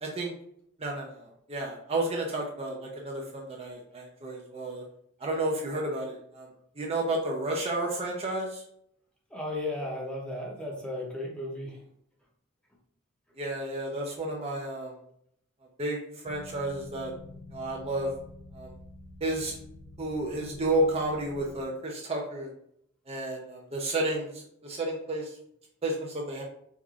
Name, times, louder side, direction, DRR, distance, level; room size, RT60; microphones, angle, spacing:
voice 1, 0.0-0.3 0.8-4.8 5.2-6.5 6.8-8.6 13.4-14.9 15.8-17.1 17.5-18.1 18.5-18.7 19.2-19.6 20.0-22.5 23.1-25.4 25.8-26.4, right 1 dB, 30° right, -1 dB, 0.6 m, -31 dB
voice 2, 9.3-11.8, left 1 dB, 5° left, -3 dB, 0.8 m, -35 dB
sound 1, 16.2-21.6, left 3 dB, 45° left, 0.4 m, -47 dB
4.7 x 2.6 x 2.4 m, 0.71 s
head